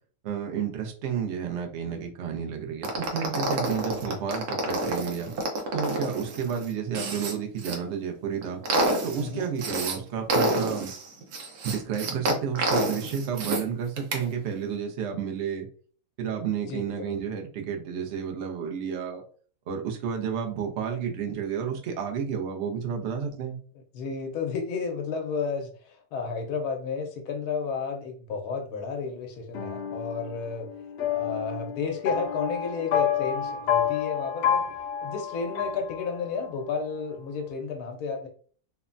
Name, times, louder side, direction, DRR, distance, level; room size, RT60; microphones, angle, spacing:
voice 1, 0.2-5.3 5.7-8.6 9.0-10.9 11.6-15.7 16.2-19.2 19.7-23.6, right 7 dB, 60° right, 3 dB, 0.8 m, -31 dB
sound 1, 2.8-7.8 8.2-10.0 10.3-13.6 14.0-14.2, right 2 dB, 85° right, 1.2 m, -28 dB
voice 2, 16.7-17.2 23.9-30.7 31.1-34.6 35.0-38.3, left 5 dB, 90° left, 3 dB, 1.1 m, -32 dB
sound 2, 29.5-36.5, left 8 dB, 65° left, 0.6 m, -29 dB
3.1 x 2.1 x 2.4 m, 0.44 s
omnidirectional pair, 1.5 m